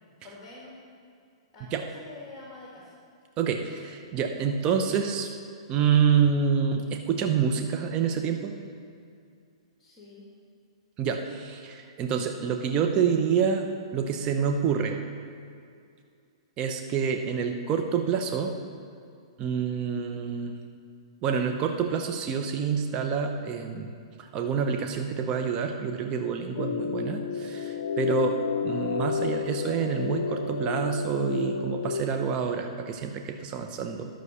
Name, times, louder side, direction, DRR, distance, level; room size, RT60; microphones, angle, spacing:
voice 1, 0.2-0.8 1.5-2.9 9.8-10.3, left 2 dB, 20° left, -4 dB, 2.1 m, -46 dB
voice 2, 3.4-5.3 5.7-8.5 11.0-13.7 13.9-15.0 16.6-18.5 19.4-20.5 21.2-23.9 24.2-28.4 28.6-34.1, right 6 dB, 30° right, 4 dB, 0.7 m, -27 dB
sound 1, 26.6-32.0, left 6 dB, 70° left, 0.5 m, -31 dB
11.0 x 6.2 x 6.8 m, 2.4 s
hypercardioid pair, 125°, 3 cm